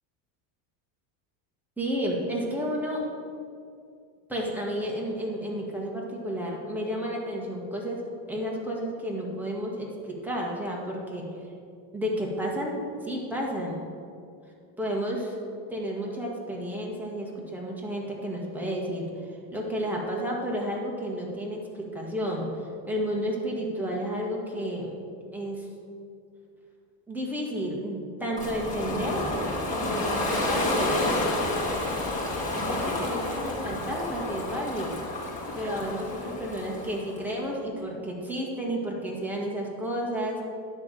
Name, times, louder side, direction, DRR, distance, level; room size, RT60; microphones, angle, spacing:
voice 1, 1.8-3.1 4.3-11.3 11.9-13.8 14.8-15.4 15.7-22.5 22.9-24.9 25.3-25.7 27.1-29.4 29.6-31.3 32.5-35.1 35.5-40.4, equal, 5° right, -2 dB, 1.6 m, -31 dB
Ocean, 28.4-37.2, left 2 dB, 15° left, 2.0 m, -30 dB
10.5 x 3.6 x 7.3 m, 2.4 s
supercardioid pair, 120°, 49 cm